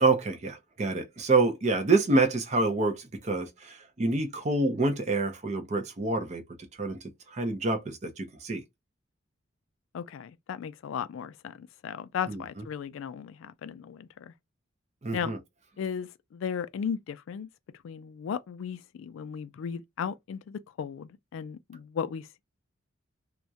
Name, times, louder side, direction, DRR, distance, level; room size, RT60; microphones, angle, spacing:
voice 1, 0.0-6.4 6.8-7.0 7.3-8.6 12.3-12.4 15.0-15.4, right 3 dB, 35° right, 0.5 m, -27 dB
voice 2, 9.9-14.3 15.1-15.3 15.8-17.5 17.8-22.4, left 7 dB, 75° left, 0.3 m, -36 dB
2.3 x 2.1 x 2.6 m
head